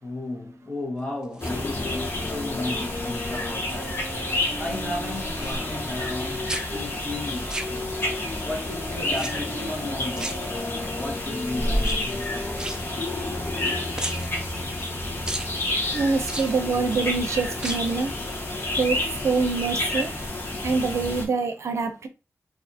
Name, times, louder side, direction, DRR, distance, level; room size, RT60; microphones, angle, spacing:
voice 1, 0.0-8.0 8.4-12.8, left 2 dB, 20° left, 1.7 m, -35 dB
sound 1, 1.2-2.2 2.7-3.1 3.4-4.4 4.7-6.2 6.5-8.3 9.1-9.7 10.1-11.0 11.7-13.7 14.0-14.9 15.3-15.5 16.2-17.0 17.5-18.0 18.3-18.4, right 1 dB, 15° right, 0.6 m, -37 dB
sound 2, 1.4-6.9 7.5-12.9, left 2 dB, 90° left, 1.0 m, -38 dB
sound 3, 1.4-21.3, left 2 dB, 50° left, 1.1 m, -30 dB
voice 2, 15.9-18.1 18.8-20.1 20.6-22.1, right 4 dB, 75° right, 0.5 m, -25 dB
4.1 x 2.6 x 2.8 m
cardioid pair, 65°, 5 cm